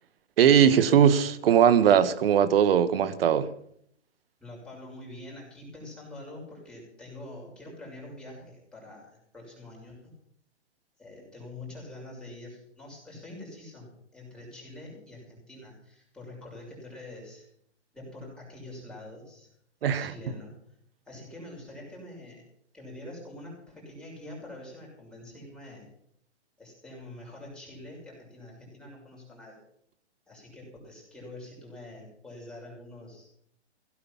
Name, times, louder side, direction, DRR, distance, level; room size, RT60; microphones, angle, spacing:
voice 1, 0.4-3.5 19.8-20.1, right 8 dB, 55° right, 1.4 m, -20 dB
voice 2, 4.4-10.0 11.0-17.5 17.9-19.5 19.8-20.5 21.0-22.4 22.7-25.9 26.6-29.6 30.3-33.3, left 1 dB, ahead, 6.3 m, -45 dB
17.0 x 9.5 x 7.3 m
hypercardioid pair, 140°, 35 cm